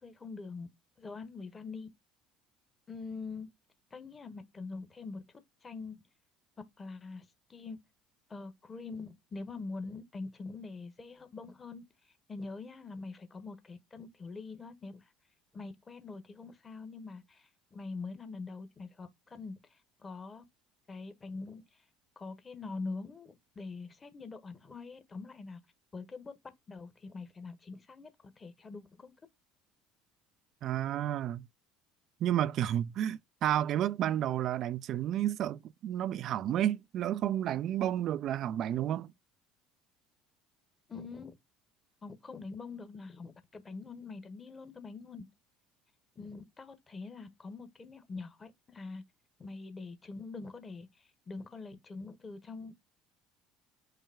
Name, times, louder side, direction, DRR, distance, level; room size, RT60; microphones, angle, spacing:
voice 1, 0.0-0.7 1.0-1.9 2.9-3.5 3.9-5.2 5.6-6.0 6.8-7.2 7.5-7.8 8.3-11.8 12.3-15.1 15.5-20.4 20.9-21.6 22.2-25.6 25.9-26.3 26.7-28.1 28.4-29.1 40.9-41.3 42.0-45.3 46.2-49.0 49.4-52.8, left 4 dB, 25° left, 1.1 m, -44 dB
voice 2, 30.6-31.5 32.2-39.1, right 11 dB, 50° right, 0.3 m, -31 dB
5.6 x 2.2 x 3.4 m
hypercardioid pair, 65°, 0 cm